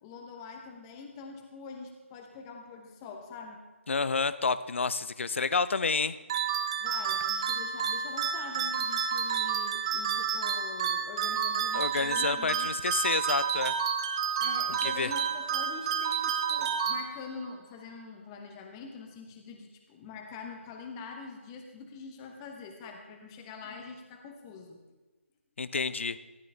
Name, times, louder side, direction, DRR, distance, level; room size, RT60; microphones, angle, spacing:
voice 1, 0.0-3.6 6.8-12.7 14.4-24.8, left 4 dB, 20° left, 3 dB, 0.9 m, -44 dB
voice 2, 3.9-6.2 11.7-13.7 14.7-15.1 25.6-26.2, left 4 dB, 65° left, 15 dB, 0.6 m, -29 dB
sound 1, 6.3-17.5, right 7 dB, 30° right, 0.6 m, -30 dB
13.5 x 11.0 x 3.4 m, 1.2 s
figure-of-eight pair, 155°, 7 cm